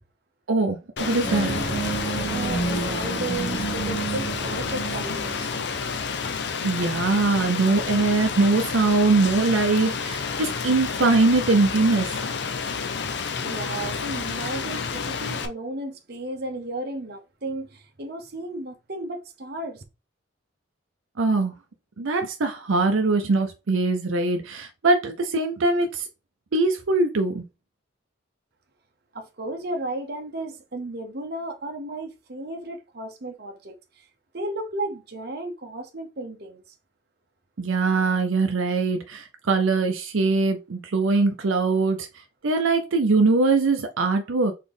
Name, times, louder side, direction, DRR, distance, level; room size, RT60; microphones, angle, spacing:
voice 1, 0.5-1.5 6.6-12.2 21.2-21.5 22.0-26.1 26.5-27.4 37.6-42.1 42.4-44.5, right 3 dB, 80° right, 0.6 m, -22 dB
Rain, 1.0-15.5, left 5 dB, 55° left, 0.6 m, -30 dB
sound 1, 1.2-6.4, right 3 dB, 40° left, 1.5 m, -30 dB
voice 2, 2.3-5.5 13.1-19.8 29.1-34.1 34.3-36.6, right 2 dB, 50° right, 0.9 m, -34 dB
4.1 x 3.6 x 3.4 m
head